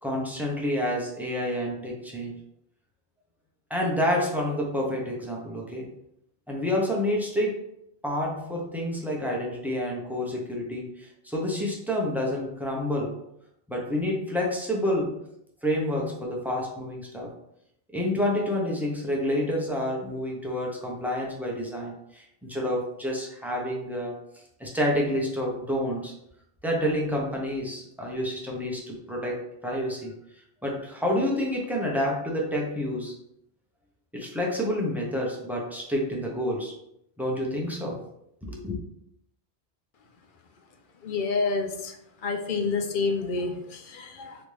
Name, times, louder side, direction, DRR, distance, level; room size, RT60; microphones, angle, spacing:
voice 1, 0.0-2.3 3.7-5.9 6.5-7.5 8.0-13.2 13.7-15.2 15.6-17.3 17.9-24.2 24.6-26.1 26.6-30.1 30.6-33.2 34.1-36.7 37.2-38.0 38.4-38.8, left 1 dB, ahead, -2 dB, 0.8 m, -28 dB
voice 2, 41.0-41.9 42.2-44.4, left 4 dB, 60° left, 5 dB, 0.7 m, -28 dB
3.9 x 3.3 x 3.3 m, 0.76 s
omnidirectional pair, 1.1 m